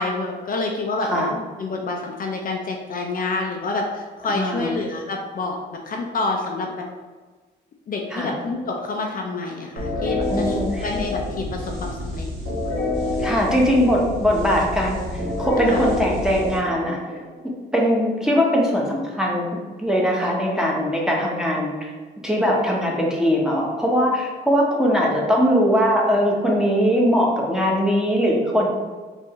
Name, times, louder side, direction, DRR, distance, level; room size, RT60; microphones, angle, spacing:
voice 1, 0.0-5.6 5.9-6.8 7.9-12.3 15.6-15.9, left 3 dB, 45° left, 1 dB, 0.5 m, -28 dB
voice 2, 4.3-4.8 8.1-8.3 10.3-10.9 13.2-15.1 15.4-17.0 17.7-19.5 19.8-21.9 22.2-28.7, equal, 5° right, -3 dB, 0.9 m, -20 dB
sound 1, 9.8-17.4, left 1 dB, 85° right, 1.4 m, -27 dB
4.4 x 2.6 x 3.0 m, 1.3 s
cardioid pair, 90°, 20 cm